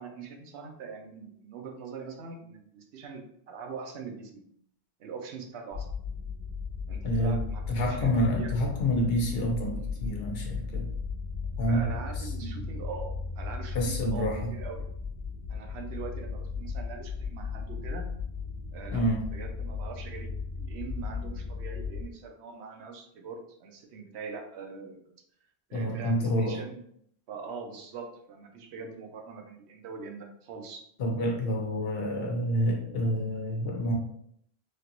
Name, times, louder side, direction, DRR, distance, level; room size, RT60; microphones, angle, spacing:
voice 1, 0.0-4.4 5.0-5.9 6.9-7.6 7.9-8.6 11.7-14.9 15.5-18.1 18.7-19.0 19.3-20.3 20.6-25.1 25.7-26.8 27.3-30.8, right 5 dB, 90° right, 3 dB, 0.9 m, -42 dB
sound 1, 5.7-22.0, left 5 dB, 70° right, 1.2 m, -36 dB
voice 2, 7.0-7.4 7.7-10.9 11.6-11.9 12.2-12.3 12.6-12.7 13.7-14.5 18.9-19.2 25.7-26.6 31.0-33.9, equal, 70° left, 1 dB, 0.9 m, -28 dB
3.2 x 2.4 x 2.8 m, 0.68 s
omnidirectional pair, 1.1 m